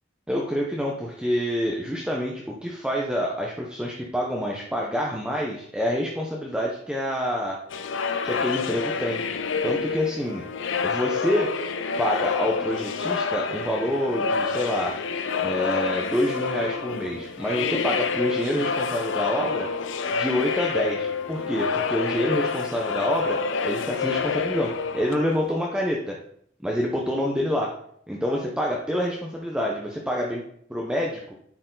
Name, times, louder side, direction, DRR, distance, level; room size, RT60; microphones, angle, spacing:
voice 1, 0.3-7.6 8.2-9.2 9.6-10.4 10.8-11.5 12.0-15.0 15.4-19.7 20.1-26.2 26.6-27.7 28.1-30.4 30.7-31.3, equal, 5° right, -2 dB, 0.8 m, -27 dB
sound 1, 7.7-25.6, left 5 dB, 85° left, 0.6 m, -28 dB
10.0 x 4.6 x 3.9 m, 0.67 s
head